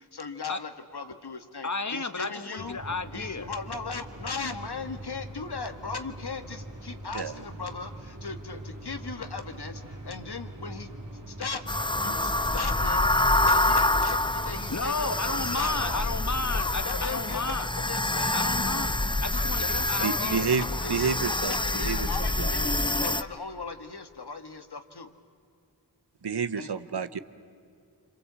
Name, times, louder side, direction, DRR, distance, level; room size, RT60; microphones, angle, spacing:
voice 1, 0.0-2.8 3.1-10.9 11.3-16.0 16.5-18.5 19.3-25.1 26.5-26.7, left 4 dB, 65° left, 8 dB, 1.6 m, -38 dB
voice 2, 1.6-3.5 14.7-17.7 18.3-20.5, left 3 dB, 45° left, 11 dB, 1.2 m, -33 dB
sound 1, 2.6-16.2, right 1 dB, 45° right, 2.4 m, -43 dB
sound 2, 11.7-23.2, left 2 dB, 10° left, 0.6 m, -27 dB
voice 3, 20.0-21.5 21.8-22.0 22.4-22.5 26.2-27.2, right 6 dB, 70° right, 13 dB, 1.0 m, -29 dB
26.5 x 26.0 x 8.1 m, 2.4 s
wide cardioid pair, 45°, 41 cm